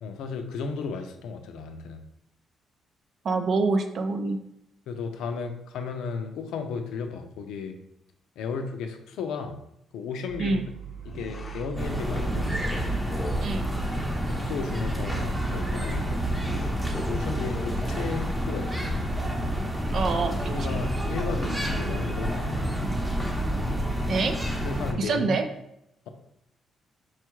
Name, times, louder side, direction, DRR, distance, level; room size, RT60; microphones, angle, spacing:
voice 1, 0.0-2.0 4.9-7.8 8.4-9.6 9.9-10.6 11.0-12.7 14.3-16.3 17.1-19.0 20.4-22.7 24.6-25.4, left 5 dB, 85° left, 6 dB, 0.5 m, -34 dB
voice 2, 3.2-4.4 10.4-10.7 13.4-13.7 19.9-20.8 24.1-24.4 25.0-25.4, right 3 dB, 55° right, 7 dB, 0.5 m, -26 dB
sound 1, 10.3-16.3, right 8 dB, 85° right, 1.2 m, -42 dB
sound 2, 11.0-13.6 16.2-18.5, left 2 dB, 30° left, 0.7 m, -40 dB
sound 3, 11.8-24.9, right 1 dB, 10° right, 0.8 m, -28 dB
4.5 x 2.4 x 4.5 m, 0.79 s
cardioid pair, 90°, 0 cm